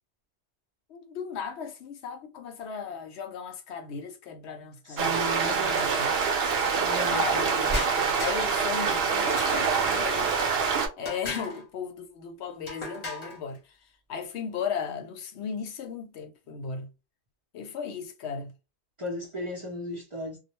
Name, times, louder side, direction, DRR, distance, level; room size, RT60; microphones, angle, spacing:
voice 1, 0.9-6.2 6.9-7.8 8.2-10.4 11.0-13.8 14.1-16.9 17.5-18.5, left 6 dB, 80° left, 0.9 m, -36 dB
voice 2, 4.8-5.9 6.7-7.9 19.0-20.4, equal, 35° right, 0.5 m, -36 dB
sound 1, 5.0-10.9, right 5 dB, 65° right, 0.8 m, -25 dB
sound 2, 7.7-8.7 9.4-10.0 11.0-11.6 12.7-13.4, left 1 dB, 40° left, 0.9 m, -35 dB
2.2 x 2.1 x 2.9 m
omnidirectional pair, 1.1 m